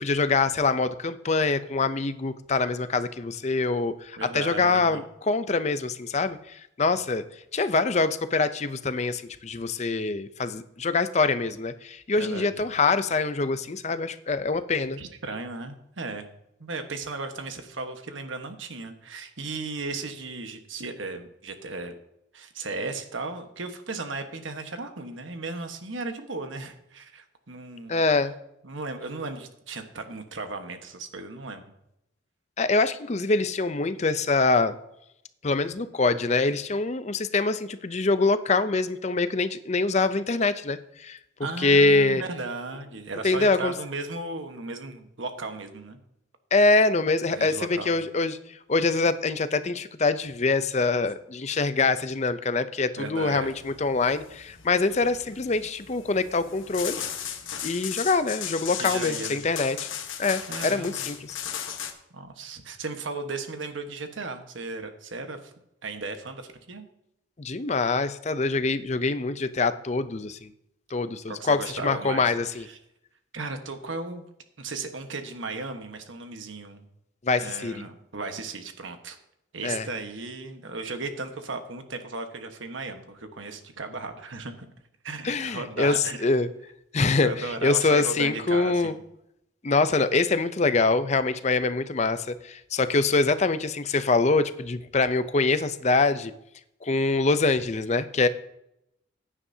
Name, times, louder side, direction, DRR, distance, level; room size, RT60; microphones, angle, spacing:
voice 1, 0.0-7.2 7.5-15.0 27.9-28.3 32.6-34.8 35.4-42.2 43.2-43.7 46.5-48.4 48.7-57.0 57.6-59.9 60.2-61.4 67.4-70.5 70.9-72.7 77.2-77.8 79.6-79.9 85.2-86.5 86.9-88.9 89.6-96.3 96.8-98.3, left 3 dB, 35° left, 12 dB, 0.5 m, -24 dB
voice 2, 4.2-5.0 12.2-12.5 15.0-16.3 16.6-21.9 22.3-28.0 28.6-31.6 41.4-46.0 47.3-47.9 53.0-53.6 58.8-59.4 60.5-61.1 62.1-65.5 65.8-66.9 71.3-72.8 73.3-74.3 74.6-76.8 77.4-79.2 79.5-84.7 85.0-86.3 87.2-89.0, right 3 dB, 75° right, 6 dB, 1.3 m, -36 dB
sound 1, 53.2-61.9, left 9 dB, 85° left, 1.2 m, -36 dB
15.5 x 9.8 x 2.8 m, 0.80 s
head